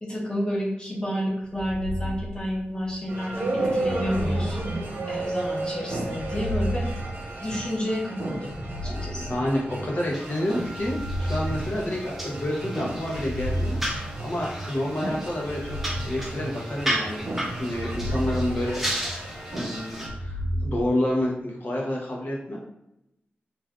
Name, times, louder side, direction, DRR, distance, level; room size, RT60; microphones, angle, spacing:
voice 1, 0.0-4.6 5.1-6.9 7.4-9.4, equal, 25° left, -4 dB, 0.9 m, -30 dB
sound 1, 1.5-3.0 3.8-5.5 6.0-7.8 8.4-10.0 10.7-12.5 13.0-14.6 15.4-17.0 17.6-19.4 19.9-20.8, equal, 55° right, 0.3 m, -32 dB
sound 2, 3.1-20.1, right 2 dB, 90° right, 0.8 m, -34 dB
voice 2, 8.9-17.3 17.6-18.9 19.5-22.6, left 1 dB, 50° left, -2 dB, 0.8 m, -29 dB
sound 3, 10.1-20.1, right 1 dB, 5° right, 0.5 m, -35 dB
2.5 x 2.3 x 3.5 m, 0.84 s
wide cardioid pair, 120°, 4 cm